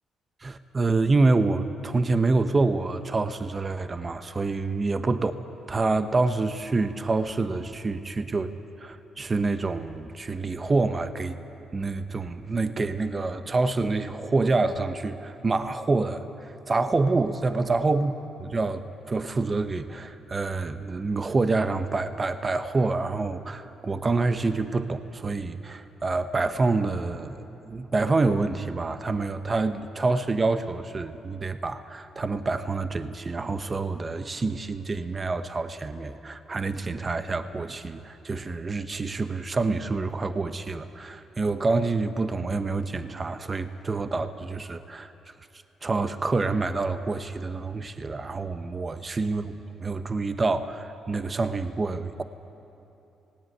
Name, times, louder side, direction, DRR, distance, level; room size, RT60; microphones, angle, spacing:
voice 1, 0.4-5.3 5.7-8.5 8.8-11.4 11.7-18.1 18.4-45.1 45.8-49.5 49.8-52.2, right 3 dB, 30° right, 10 dB, 0.9 m, -27 dB
18.0 x 18.0 x 9.2 m, 2.9 s
cardioid pair, 90°, 0 cm